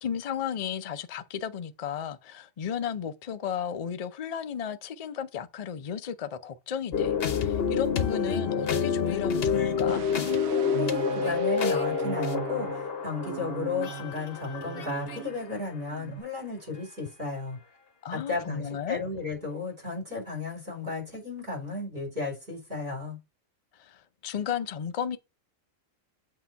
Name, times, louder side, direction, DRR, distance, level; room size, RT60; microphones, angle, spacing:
voice 1, 0.0-10.0 18.0-19.0 23.8-25.2, left 8 dB, 80° left, 0.3 m, -34 dB
sound 1, 6.9-15.2, left 6 dB, 55° left, 0.9 m, -28 dB
sound 2, 9.9-15.6 15.9-16.2, right 12 dB, 85° right, 1.1 m, -39 dB
voice 2, 10.8-17.6 18.1-23.2, left 3 dB, 40° right, 4.4 m, -34 dB
8.1 x 2.9 x 5.4 m
omnidirectional pair, 1.4 m